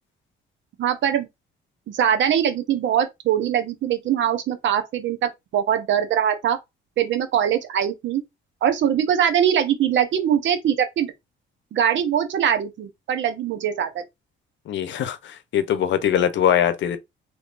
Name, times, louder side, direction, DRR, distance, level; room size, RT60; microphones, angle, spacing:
voice 1, 0.8-1.3 1.9-6.6 7.0-8.2 8.6-11.1 11.7-14.0, right 9 dB, 70° right, 0.9 m, -22 dB
voice 2, 14.7-17.0, left 9 dB, 70° left, 0.7 m, -22 dB
3.5 x 3.1 x 2.5 m
cardioid pair, 90°, 20 cm